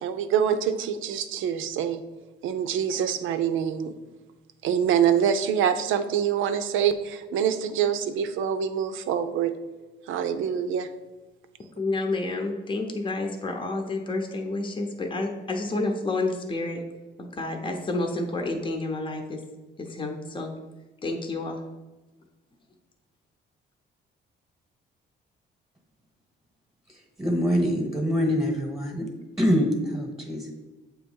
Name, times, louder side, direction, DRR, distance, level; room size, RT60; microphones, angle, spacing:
voice 1, 0.0-2.0 2.4-3.9 4.6-9.5 10.1-10.9, right 8 dB, 85° right, 10 dB, 0.6 m, -25 dB
voice 2, 11.8-16.8 17.2-19.4 19.8-20.5 21.0-21.6, left 2 dB, 25° left, 3 dB, 0.8 m, -29 dB
voice 3, 27.2-29.1 29.4-30.5, equal, 15° right, 1 dB, 1.1 m, -24 dB
7.0 x 3.0 x 5.4 m, 1.1 s
cardioid pair, 90°, 20 cm